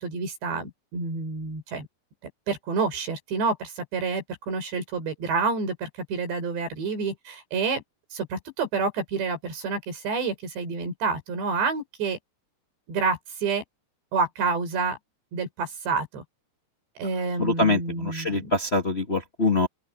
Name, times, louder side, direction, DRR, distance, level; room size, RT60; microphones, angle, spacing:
voice 1, 0.0-1.9 2.5-7.8 8.1-12.2 12.9-13.6 14.1-15.0 15.3-16.2 17.0-18.5, right 4 dB, 80° right, 7.6 m, -28 dB
voice 2, 17.4-19.7, left 2 dB, 70° left, 0.6 m, -24 dB
open air
omnidirectional pair, 4.9 m